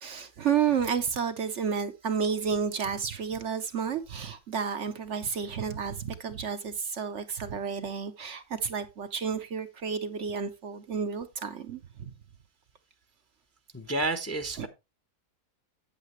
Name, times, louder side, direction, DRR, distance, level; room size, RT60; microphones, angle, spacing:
voice 1, 0.0-12.1 14.6-14.7, right 7 dB, 55° right, 1.1 m, -31 dB
voice 2, 13.7-14.7, right 2 dB, 15° left, 0.7 m, -30 dB
8.9 x 8.3 x 3.1 m
omnidirectional pair, 1.5 m